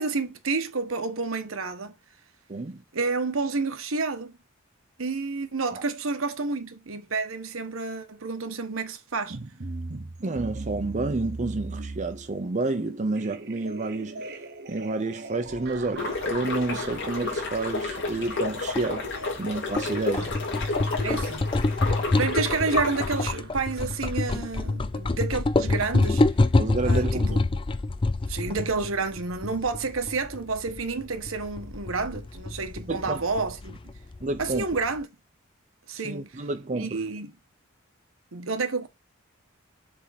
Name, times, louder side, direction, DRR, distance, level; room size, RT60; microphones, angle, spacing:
voice 1, 0.0-2.0 2.9-4.3 5.0-9.4 20.1-20.3 21.0-21.4 22.2-26.2 26.8-27.4 28.3-33.9 34.4-35.1 35.9-36.3 36.7-37.3 38.3-38.9, right 4 dB, 75° right, 1.1 m, -29 dB
voice 2, 2.5-2.8 5.7-5.8 10.2-14.4 14.7-19.1 19.4-20.3 26.6-27.4 32.9-33.2 34.2-34.6 36.0-37.0, right 3 dB, 35° right, 0.6 m, -30 dB
sound 1, 9.3-24.5, right 3 dB, 50° right, 1.0 m, -41 dB
sound 2, 15.5-35.0, left 2 dB, 25° left, 0.4 m, -27 dB
sound 3, 16.0-23.3, left 3 dB, 55° left, 2.7 m, -31 dB
7.3 x 3.6 x 4.2 m
head